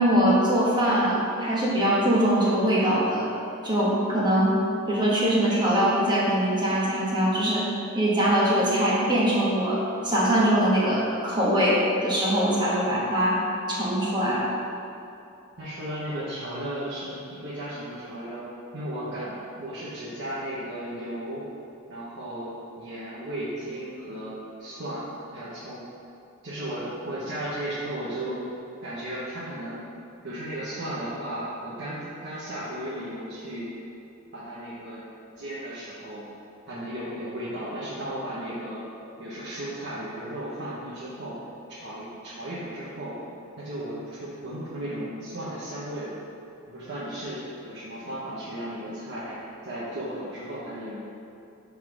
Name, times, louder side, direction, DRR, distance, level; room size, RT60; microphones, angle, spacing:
voice 1, 0.0-3.3 3.6-4.5 4.9-7.6 7.9-11.8 12.0-13.4 13.7-14.4, right 1 dB, 20° right, -7 dB, 1.5 m, -22 dB
voice 2, 15.6-18.4 18.7-21.4 21.9-25.0 25.3-25.8 26.4-28.4 28.8-29.8 30.2-33.7 34.3-35.0 35.4-36.2 36.7-38.8 39.2-41.4 41.7-43.2 43.6-46.1 46.7-51.0, right 1 dB, 55° right, -10 dB, 1.2 m, -35 dB
5.7 x 3.9 x 6.0 m, 2.8 s
head